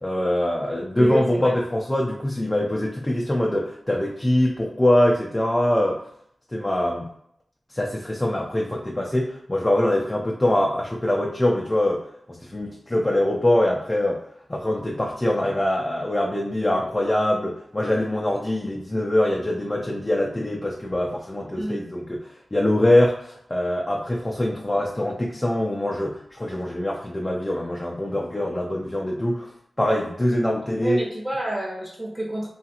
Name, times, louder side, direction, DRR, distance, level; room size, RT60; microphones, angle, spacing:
voice 1, 0.0-6.0 6.5-7.0 7.7-12.0 12.4-14.2 14.5-22.2 22.5-29.5 29.8-31.0, left 1 dB, 25° left, -1 dB, 0.5 m, -23 dB
voice 2, 0.9-1.6 21.6-21.8 30.8-32.5, right 1 dB, 25° right, -2 dB, 1.0 m, -29 dB
2.8 x 2.4 x 2.8 m, 0.71 s
cardioid pair, 50°, 0 cm